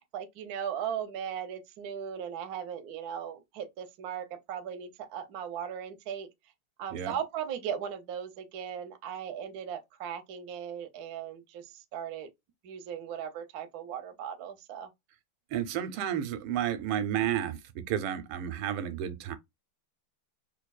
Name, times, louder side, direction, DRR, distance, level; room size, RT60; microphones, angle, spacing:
voice 1, 0.0-6.3 6.8-12.3 12.6-14.9, right 8 dB, 65° right, 0.9 m, -38 dB
voice 2, 15.5-19.4, right 10 dB, 85° right, 1.6 m, -31 dB
4.4 x 2.6 x 2.3 m
omnidirectional pair, 2.4 m